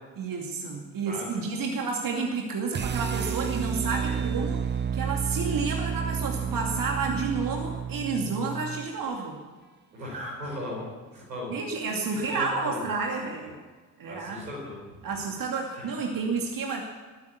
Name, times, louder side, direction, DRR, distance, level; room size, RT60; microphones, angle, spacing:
voice 1, 0.2-4.6 4.9-9.4 11.5-13.6 14.0-14.5 15.0-16.8, right 4 dB, 45° right, 1 dB, 2.5 m, -30 dB
sound 1, 2.7-8.9, right 7 dB, 20° right, 0.7 m, -30 dB
voice 2, 9.9-10.9 11.1-11.5 11.8-12.0 12.3-12.9 14.1-14.8 15.7-15.9, left 1 dB, 80° right, -2 dB, 5.1 m, -37 dB
20.5 x 9.6 x 7.2 m, 1.4 s
figure-of-eight pair, 50°, 48 cm